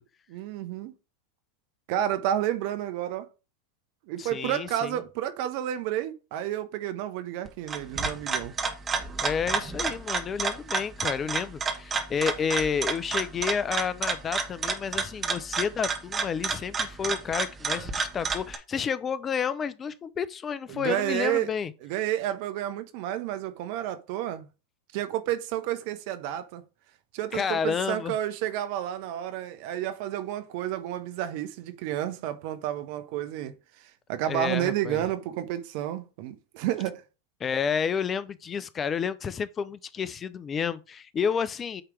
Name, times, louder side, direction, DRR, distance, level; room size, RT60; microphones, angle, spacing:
voice 1, 0.3-0.9 1.9-3.3 4.1-8.6 20.7-21.6 21.8-24.5 24.9-26.6 27.1-37.0, right 12 dB, 55° right, 1.0 m, -31 dB
voice 2, 4.2-5.0 9.2-21.7 27.3-28.1 34.3-35.0 37.4-41.8, left 6 dB, 25° left, 0.7 m, -30 dB
sound 1, 7.5-18.6, right 5 dB, 25° right, 1.2 m, -30 dB
8.8 x 3.3 x 4.8 m
hypercardioid pair, 100°, 0 cm